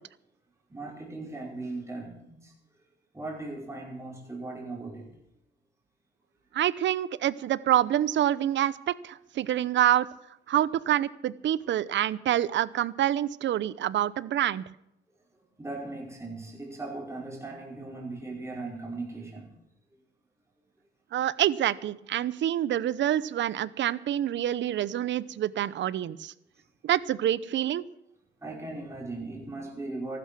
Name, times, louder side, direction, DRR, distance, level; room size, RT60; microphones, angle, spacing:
voice 1, 0.7-2.5 3.1-5.1 15.6-19.5 28.4-30.2, right 2 dB, 15° right, 5.1 m, -38 dB
voice 2, 6.5-10.1 10.5-14.6 21.1-26.3 26.8-27.8, right 11 dB, 65° right, 0.8 m, -27 dB
15.0 x 12.5 x 6.1 m
cardioid pair, 90°, 20 cm